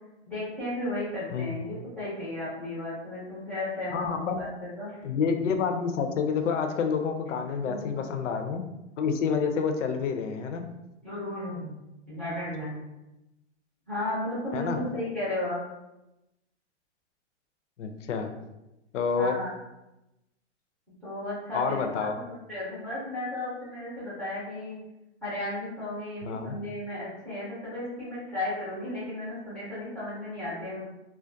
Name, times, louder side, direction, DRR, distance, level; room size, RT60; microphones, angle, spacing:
voice 1, 0.3-4.5 4.8-5.0 7.6-8.0 11.0-11.7 12.1-12.8 13.9-15.6 19.2-19.5 21.0-22.2 22.5-24.8 25.2-30.8, left 1 dB, 5° left, -10 dB, 0.3 m, -34 dB
voice 2, 3.9-4.5 5.0-8.6 9.0-10.6 14.5-14.8 17.8-18.3 18.9-19.4 21.5-22.2 26.2-26.6, left 6 dB, 85° left, 6 dB, 0.5 m, -28 dB
2.3 x 2.2 x 2.5 m, 0.94 s
hypercardioid pair, 145°, 36 cm